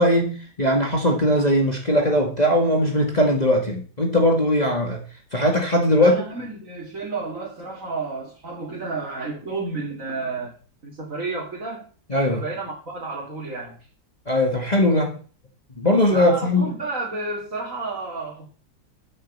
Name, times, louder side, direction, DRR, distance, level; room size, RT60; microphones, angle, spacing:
voice 1, 0.0-5.0 5.3-6.2 12.1-12.4 14.3-15.2 15.7-16.7, left 1 dB, 20° left, 1.7 m, -20 dB
voice 2, 5.9-10.5 10.8-11.9 12.3-13.8 16.1-18.5, right 3 dB, 40° right, 2.9 m, -31 dB
8.5 x 7.7 x 7.2 m
omnidirectional pair, 2.1 m